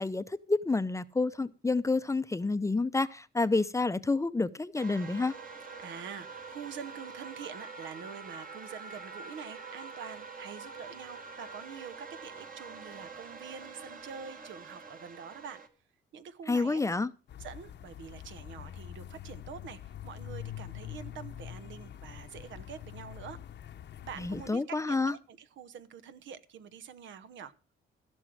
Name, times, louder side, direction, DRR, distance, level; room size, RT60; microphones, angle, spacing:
voice 1, 0.0-5.3 16.5-17.1 24.2-25.1, left 3 dB, 15° left, 0.6 m, -29 dB
sound 1, 4.8-15.7, right 4 dB, 45° right, 1.9 m, -46 dB
voice 2, 5.8-15.6 16.1-16.9 17.4-23.4 24.0-27.5, right 7 dB, 75° right, 1.1 m, -46 dB
sound 2, 17.3-24.5, left 11 dB, 65° left, 0.9 m, -45 dB
15.5 x 6.3 x 6.2 m
cardioid pair, 90°, 20 cm